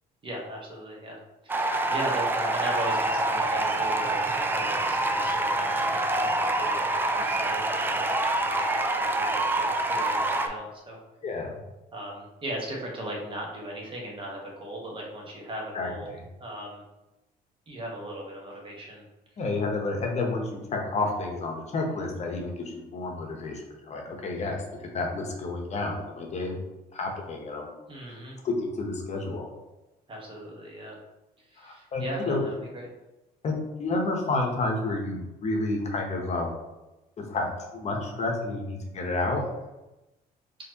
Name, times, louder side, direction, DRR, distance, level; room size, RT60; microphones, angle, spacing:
voice 1, 0.2-1.2 1.4-11.0 11.9-16.1 16.4-16.8 17.7-19.0 27.9-28.4 30.1-31.0 31.5-32.9, right 1 dB, 30° right, -2 dB, 1.2 m, -38 dB
sound 1, 1.5-10.5, right 2 dB, 10° right, 0.3 m, -26 dB
voice 2, 11.2-11.6 15.7-16.2 19.4-20.4 20.7-24.6 24.9-26.6 26.9-27.7 28.1-28.2 28.4-29.5 31.6-32.4 33.4-36.5 37.3-37.5 37.7-39.4, left 2 dB, 40° left, 1 dB, 0.9 m, -30 dB
4.1 x 3.0 x 2.8 m, 1.0 s
cardioid pair, 110°, 17 cm